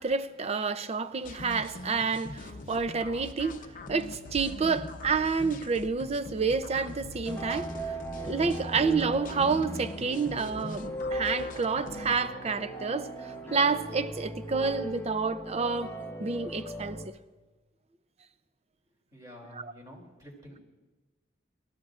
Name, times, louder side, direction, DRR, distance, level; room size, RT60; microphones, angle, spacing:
voice 1, 0.0-15.9 16.2-17.0 19.5-19.7, right 4 dB, 35° right, 0.5 m, -29 dB
sound 1, 1.2-12.3, left 2 dB, 45° left, 0.7 m, -43 dB
sound 2, 7.3-17.1, right 1 dB, 15° left, 0.9 m, -38 dB
voice 2, 19.1-20.6, equal, 20° right, 2.9 m, -49 dB
28.0 x 13.5 x 2.5 m
head